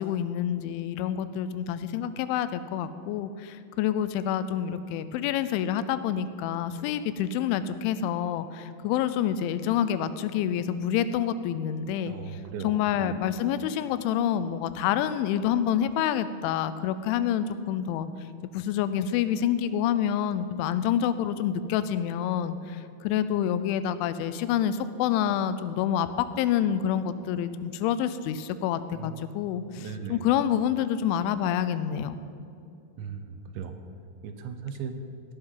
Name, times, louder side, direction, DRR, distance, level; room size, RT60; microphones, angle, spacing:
voice 1, 0.0-18.1 18.5-32.2, left 9 dB, 90° left, 13 dB, 3.0 m, -27 dB
voice 2, 12.0-13.2 28.9-29.3 29.8-30.2 33.0-33.7 34.2-34.9, right 6 dB, 80° right, 7 dB, 3.0 m, -37 dB
17.0 x 11.5 x 3.9 m, 2.7 s
omnidirectional pair, 5.4 m